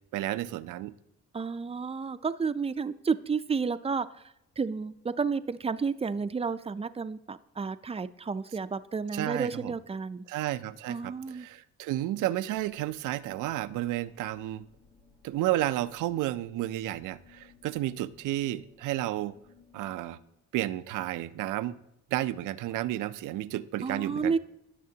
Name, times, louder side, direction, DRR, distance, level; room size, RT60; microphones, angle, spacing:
voice 1, 0.1-0.9 9.1-9.7 10.3-14.7 15.2-19.4 19.7-20.2 20.5-21.8 22.1-24.4, right 15 dB, 90° right, 14 dB, 0.5 m, -32 dB
voice 2, 1.3-4.1 4.6-10.2 10.9-11.5 23.8-24.4, right 5 dB, 20° right, 12 dB, 0.4 m, -31 dB
sound 1, 12.5-20.2, left 5 dB, 90° left, 3.4 m, -61 dB
17.0 x 6.7 x 2.8 m, 0.84 s
cardioid pair, 90°, 30 cm